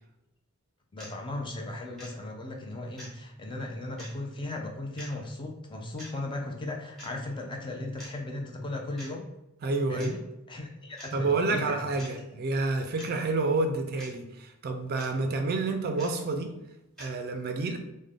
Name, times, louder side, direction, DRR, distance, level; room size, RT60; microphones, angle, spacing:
voice 1, 0.9-9.3 9.9-10.2 10.5-11.7, left 2 dB, 20° left, 2 dB, 0.4 m, -37 dB
sound 1, 1.0-1.1 2.0-2.1 3.0-3.1 4.0-4.1 5.0-5.1 6.0-6.1 7.0-7.1 8.0-8.1 9.0-9.1 10.0-10.1 11.0-11.1 12.0-12.1 13.0-13.1 14.0-14.1 15.0-15.1 16.0-16.1 17.0-17.1, equal, ahead, 1.0 m, -45 dB
voice 2, 9.6-10.2 11.1-16.5 17.0-17.8, right 3 dB, 45° right, 6 dB, 0.3 m, -29 dB
3.5 x 2.1 x 3.5 m, 0.94 s
head